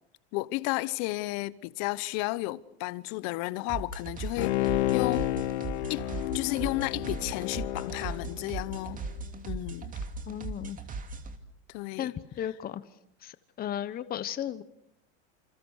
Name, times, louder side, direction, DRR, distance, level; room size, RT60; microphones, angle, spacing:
voice 1, 0.3-5.3 5.9-6.1 6.3-9.0 9.5-9.9 11.7-12.1, left 20 dB, 55° left, 1.2 m, -33 dB
sound 1, 3.7-11.4, right 3 dB, 25° right, 2.8 m, -38 dB
Bowed string instrument, 4.4-9.0 9.4-9.5, left 16 dB, 80° left, 1.0 m, -31 dB
voice 2, 10.3-10.8 12.0-12.8 13.2-14.6, left 11 dB, 25° left, 1.1 m, -35 dB
28.5 x 27.0 x 6.5 m
supercardioid pair, 135°, 34 cm